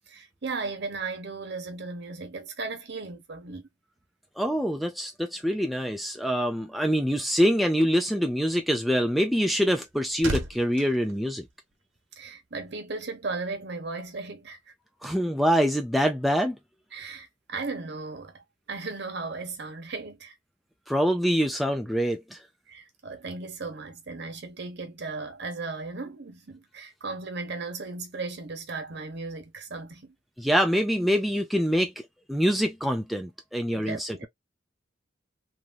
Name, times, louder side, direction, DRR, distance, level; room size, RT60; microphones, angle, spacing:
voice 1, 0.1-3.7 12.2-14.6 16.9-20.3 22.7-30.1 33.7-34.3, right 3 dB, 60° right, 1.1 m, -36 dB
voice 2, 4.4-11.4 15.0-16.6 20.9-22.4 30.4-31.9 32.3-34.3, equal, ahead, 0.3 m, -25 dB
sound 1, 9.7-12.2 12.4-12.7, right 1 dB, 90° right, 1.1 m, -37 dB
3.1 x 2.6 x 2.3 m
head